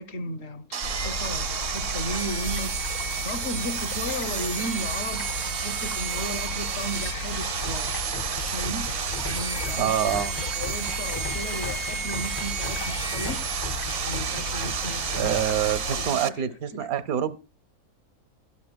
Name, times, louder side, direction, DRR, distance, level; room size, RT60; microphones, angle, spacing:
voice 1, 0.0-2.7 3.2-5.2 5.5-9.0 9.3-13.4 14.0-15.7 16.0-16.9, equal, 55° left, 0.9 m, -35 dB
Sawing, 0.7-16.3, right 7 dB, 55° right, 0.7 m, -31 dB
sound 1, 0.8-16.1, left 3 dB, 85° left, 1.7 m, -35 dB
sound 2, 7.6-15.6, left 2 dB, 35° left, 0.4 m, -39 dB
voice 2, 9.8-10.3 15.1-17.4, right 10 dB, 75° right, 1.2 m, -26 dB
16.0 x 12.5 x 2.2 m
omnidirectional pair, 1.6 m